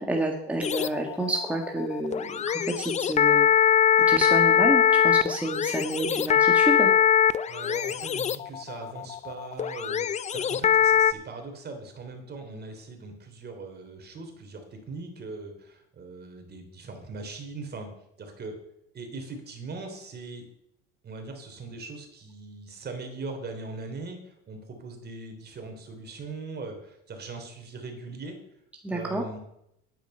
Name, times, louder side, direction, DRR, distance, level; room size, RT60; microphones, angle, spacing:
voice 1, 0.0-3.7 4.1-6.9 28.8-29.2, right 1 dB, 5° right, 1 dB, 1.6 m, -29 dB
sound 1, 0.6-11.1, left 9 dB, 25° left, 0.5 m, -22 dB
voice 2, 7.5-17.9 18.2-18.6 18.9-20.4 21.0-28.4 28.9-29.4, right 3 dB, 35° right, 5 dB, 3.2 m, -40 dB
11.0 x 9.3 x 5.6 m, 0.78 s
supercardioid pair, 110°, 29 cm